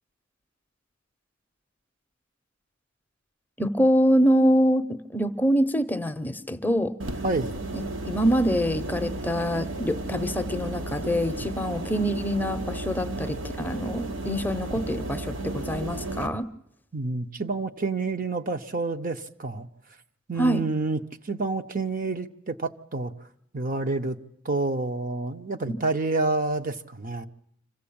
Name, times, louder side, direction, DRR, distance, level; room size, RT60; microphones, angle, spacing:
voice 1, 3.6-6.9 7.7-16.5 20.4-20.6 25.7-25.8, equal, 10° left, 8 dB, 0.7 m, -25 dB
sound 1, 7.0-16.3, right 2 dB, 75° right, 1.2 m, -33 dB
voice 2, 7.2-7.5 16.9-19.7 20.3-23.1 23.5-24.2 24.4-27.3, right 3 dB, 45° right, 7 dB, 0.8 m, -28 dB
26.0 x 15.5 x 8.6 m, 0.79 s
head